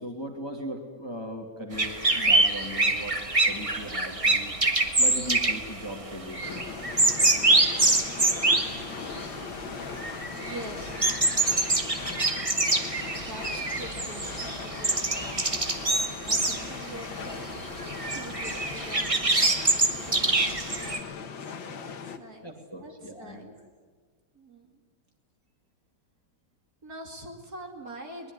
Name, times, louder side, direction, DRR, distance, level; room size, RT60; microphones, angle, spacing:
voice 1, 0.0-4.6 5.0-6.7 20.2-20.3 22.4-23.5, equal, 10° left, 3 dB, 2.5 m, -38 dB
sound 1, 1.7-9.6 9.8-21.0, right 2 dB, 20° right, 1.4 m, -26 dB
sound 2, 6.4-22.2, left 6 dB, 65° left, 2.1 m, -39 dB
voice 2, 10.3-11.1 13.3-15.2 16.2-19.3 20.0-20.5 20.8-21.4 21.8-22.5 22.8-23.5 24.3-24.8 26.8-28.3, right 2 dB, 45° right, 2 dB, 3.3 m, -44 dB
22.5 x 20.5 x 9.7 m, 1.5 s
omnidirectional pair, 2.2 m